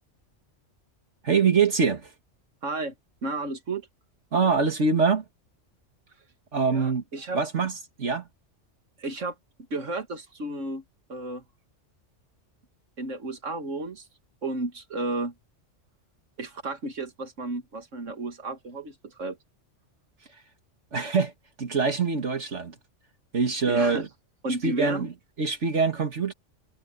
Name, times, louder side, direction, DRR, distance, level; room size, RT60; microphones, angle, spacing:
voice 1, 1.2-2.1 4.3-5.2 6.5-7.0 7.3-8.3 20.9-21.3 21.6-22.8 23.3-24.1 24.6-25.1 25.4-26.3, right 5 dB, 70° right, 2.2 m, -24 dB
voice 2, 2.6-2.9 3.2-3.9 6.7-7.4 9.0-9.4 9.7-10.8 11.1-11.4 13.0-14.1 14.4-15.3 16.4-19.4 23.6-24.0 24.4-25.1, right 2 dB, 90° right, 2.3 m, -32 dB
omnidirectional pair, 1.3 m